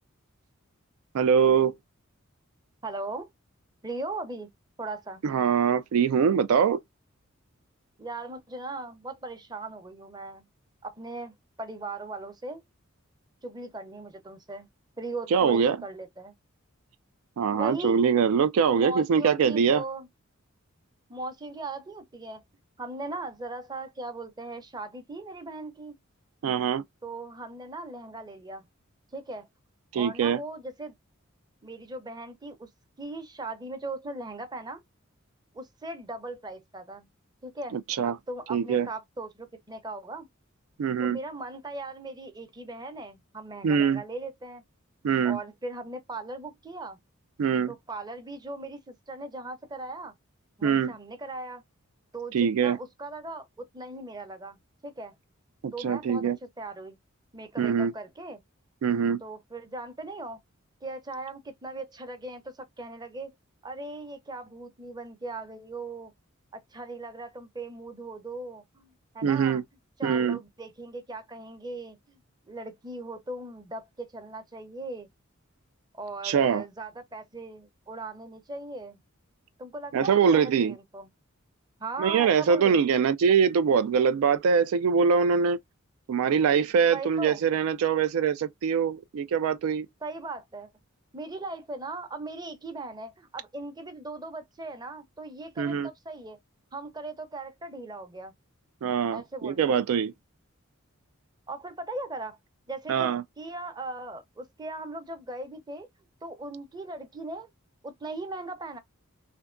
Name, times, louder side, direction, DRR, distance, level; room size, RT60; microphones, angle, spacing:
voice 1, 1.1-1.7 5.2-6.8 15.3-15.8 17.4-19.8 26.4-26.8 29.9-30.4 37.7-38.2 38.5-38.9 40.8-41.2 43.6-44.0 45.0-45.4 47.4-47.7 50.6-50.9 52.3-52.8 55.6-56.4 57.6-57.9 58.8-59.2 69.2-69.6 70.0-70.4 76.2-76.6 79.9-80.7 82.0-85.6 86.1-89.9 95.6-95.9 98.8-100.1 102.9-103.2, right 6 dB, 85° right, 0.3 m, -23 dB
voice 2, 2.8-3.3 3.8-4.5 4.8-5.2 8.0-10.4 10.8-12.6 13.4-14.7 15.0-16.3 17.5-18.0 18.7-20.1 21.1-22.4 22.8-26.0 27.0-28.6 29.1-29.5 29.9-30.9 31.6-32.7 33.0-34.8 35.5-37.1 37.4-37.8 38.0-40.3 41.0-44.6 45.2-47.0 47.7-50.1 50.6-51.6 52.1-55.1 55.7-57.0 57.3-58.4 59.2-60.4 60.8-63.3 63.6-66.1 66.5-69.6 70.0-72.2 72.5-75.1 75.9-79.0 79.6-81.1 81.8-83.0 86.9-87.4 90.0-90.7 91.1-96.4 96.7-98.3 99.1-99.7 101.5-102.4 102.7-105.9 106.2-107.5 107.8-108.8, right 2 dB, 20° right, 0.7 m, -39 dB
3.4 x 2.7 x 2.5 m
head